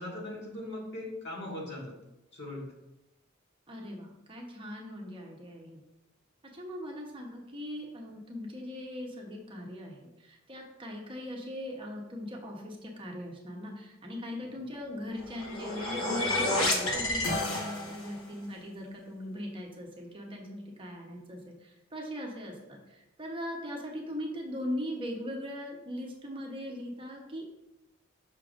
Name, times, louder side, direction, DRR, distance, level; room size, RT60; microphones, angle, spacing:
voice 1, 0.0-2.0 2.3-2.7, left 1 dB, 60° left, -4 dB, 1.7 m, -39 dB
voice 2, 3.7-5.8 6.5-27.4, left 1 dB, 25° right, 0 dB, 0.9 m, -40 dB
sound 1, 15.2-18.2, left 2 dB, 85° left, 1.3 m, -30 dB
6.6 x 5.9 x 2.5 m, 0.92 s
head